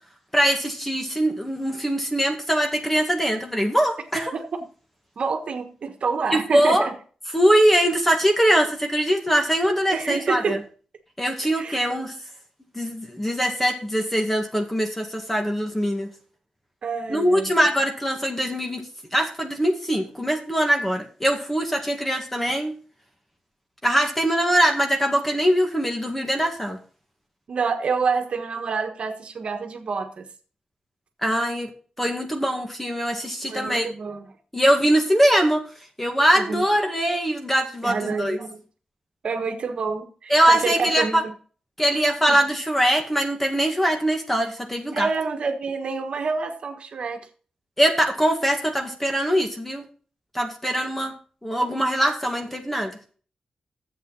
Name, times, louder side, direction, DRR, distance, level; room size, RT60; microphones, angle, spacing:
voice 1, 0.3-4.3 6.3-6.9 7.3-10.6 11.2-12.1 12.7-16.1 17.1-18.9 19.1-22.7 23.8-26.8 31.2-31.7 32.0-33.9 34.5-35.6 36.0-38.4 40.3-41.2 41.8-45.1 47.8-49.9 50.3-51.1 51.4-52.9, equal, 10° left, 3 dB, 1.9 m, -22 dB
voice 2, 5.2-6.9 9.9-10.6 11.6-11.9 16.8-17.5 27.5-30.3 33.5-34.3 36.4-36.7 37.8-38.6 39.2-41.3 42.3-42.4 44.9-47.3, right 5 dB, 65° right, 5 dB, 1.4 m, -28 dB
11.0 x 7.9 x 3.9 m, 0.40 s
wide cardioid pair, 95°, 2 cm